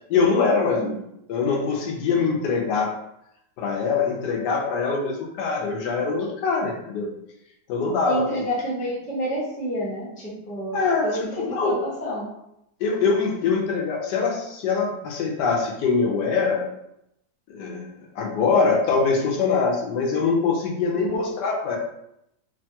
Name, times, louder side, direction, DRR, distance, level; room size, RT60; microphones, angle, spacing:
voice 1, 0.1-1.0 1.3-3.0 3.6-7.1 7.7-8.3 10.7-11.1 11.4-11.8 12.8-16.7 17.5-17.9 18.2-21.8, left 4 dB, 85° left, 0 dB, 1.2 m, -23 dB
voice 2, 0.7-1.0 8.1-10.8 11.0-12.3 20.9-21.2, equal, 10° left, -8 dB, 0.5 m, -29 dB
3.3 x 2.3 x 2.7 m, 0.80 s
omnidirectional pair, 1.8 m